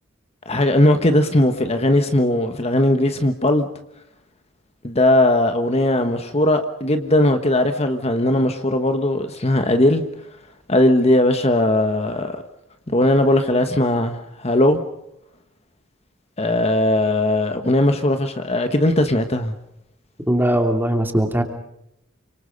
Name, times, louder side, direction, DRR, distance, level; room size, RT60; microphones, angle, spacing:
voice 1, 0.4-3.7 4.8-10.0 10.7-12.4 12.9-14.8 16.4-19.5, left 1 dB, 30° left, 7 dB, 1.4 m, -18 dB
voice 2, 20.3-21.4, right 1 dB, 10° right, 4 dB, 3.0 m, -19 dB
29.5 x 26.0 x 5.4 m, 0.85 s
head